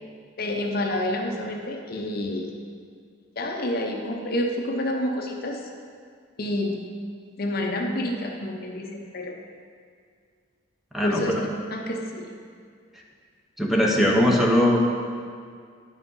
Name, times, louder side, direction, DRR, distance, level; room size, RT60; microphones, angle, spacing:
voice 1, 0.4-2.5 3.4-5.6 6.4-6.8 7.4-9.4 11.0-12.3, left 1 dB, 45° left, 2 dB, 0.8 m, -28 dB
voice 2, 10.9-11.2 13.6-14.8, equal, ahead, -2 dB, 0.9 m, -20 dB
9.9 x 6.0 x 5.5 m, 2.1 s
head